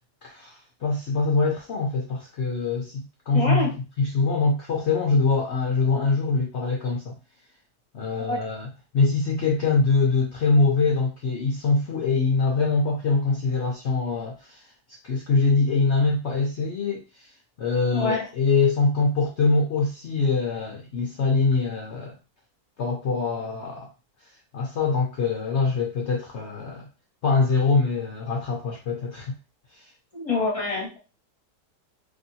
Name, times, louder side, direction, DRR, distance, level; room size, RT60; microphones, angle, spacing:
voice 1, 0.2-7.1 7.9-8.7 8.9-14.7 15.0-17.3 17.6-22.2 22.8-23.9 24.5-26.9 27.2-29.4 29.7-29.9, left 4 dB, 70° left, -1 dB, 0.6 m, -24 dB
voice 2, 3.3-3.7 8.3-8.4 17.9-18.2 30.1-31.0, left 3 dB, 25° left, -3 dB, 0.9 m, -26 dB
3.0 x 2.6 x 2.6 m, 0.30 s
omnidirectional pair, 1.8 m